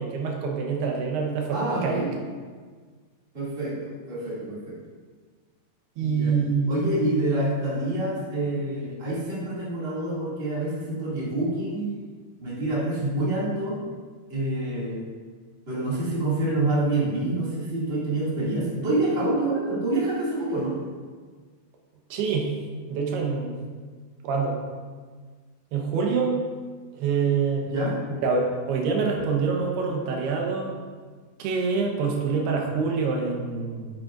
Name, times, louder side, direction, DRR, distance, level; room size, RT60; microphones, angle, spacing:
voice 1, 0.0-2.0 6.0-6.9 22.1-22.5 22.9-23.5 24.2-24.6 25.7-26.5 27.0-27.7 28.2-30.7 31.4-33.9, right 5 dB, 90° right, 0 dB, 3.1 m, -26 dB
voice 2, 1.5-2.1 3.3-4.7 6.0-6.3 6.7-11.9 12.4-13.8 14.3-15.0 15.7-20.8 27.7-27.9, right 2 dB, 20° right, -8 dB, 1.8 m, -27 dB
9.8 x 7.9 x 2.5 m, 1.5 s
omnidirectional pair, 4.5 m